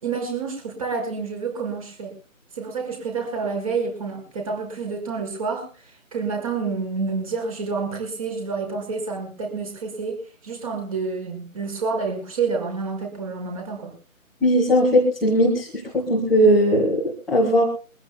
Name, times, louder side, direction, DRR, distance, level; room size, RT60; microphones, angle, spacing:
voice 1, 0.0-2.1 2.5-13.9, right 4 dB, 25° right, 3 dB, 5.3 m, -28 dB
voice 2, 14.4-15.7 15.9-17.6, equal, ahead, -12 dB, 1.5 m, -18 dB
23.5 x 15.5 x 2.2 m, 0.35 s
figure-of-eight pair, 160°, 41 cm